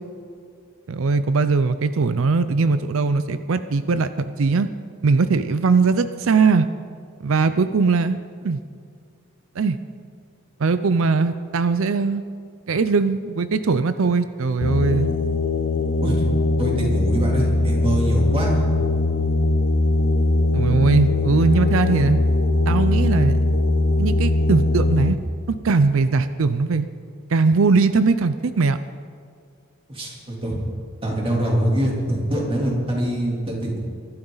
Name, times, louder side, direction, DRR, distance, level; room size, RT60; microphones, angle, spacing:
voice 1, 0.9-4.7 5.0-6.7 7.2-8.2 8.4-8.6 9.6-9.8 10.6-12.2 12.7-15.1 20.5-22.2 22.7-23.4 24.0-25.2 25.5-26.9 27.3-28.8, right 4 dB, 70° right, 12 dB, 0.5 m, -20 dB
sound 1, 14.6-25.1, left 2 dB, 55° left, 0.8 m, -20 dB
voice 2, 16.6-18.6 29.9-30.6 31.0-33.8, equal, 25° right, -2 dB, 3.2 m, -24 dB
24.0 x 12.0 x 4.0 m, 2.3 s
head